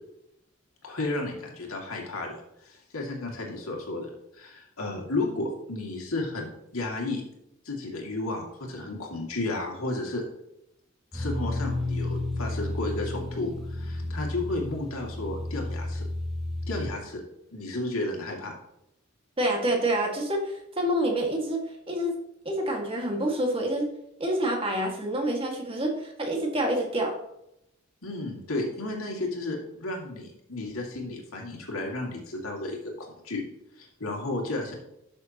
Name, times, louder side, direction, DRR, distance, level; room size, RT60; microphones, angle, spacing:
voice 1, 0.8-2.4 2.6-7.2 7.6-10.2 11.1-16.1 16.7-17.2 17.5-18.6 28.0-33.4 33.8-34.7, left 2 dB, 85° left, 0 dB, 2.5 m, -33 dB
sound 1, 11.1-16.9, left 2 dB, ahead, 1.9 m, -32 dB
voice 2, 19.4-22.2 22.4-23.9 24.2-27.2, right 1 dB, 25° right, 0 dB, 1.9 m, -27 dB
12.0 x 6.8 x 3.0 m, 0.82 s
head